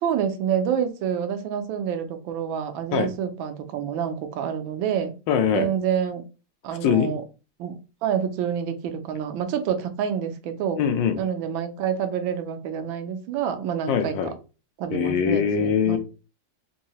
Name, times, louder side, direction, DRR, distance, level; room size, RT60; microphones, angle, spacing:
voice 1, 0.0-5.1 5.5-6.2 6.6-7.2 7.6-7.7 8.0-10.8 11.2-14.1 14.8-16.0, right 8 dB, 90° right, 1.4 m, -27 dB
voice 2, 5.3-5.7 6.8-7.1 10.8-11.2 13.9-14.3 14.9-16.0, left 8 dB, 80° left, 1.3 m, -22 dB
3.9 x 2.7 x 2.8 m
omnidirectional pair, 2.1 m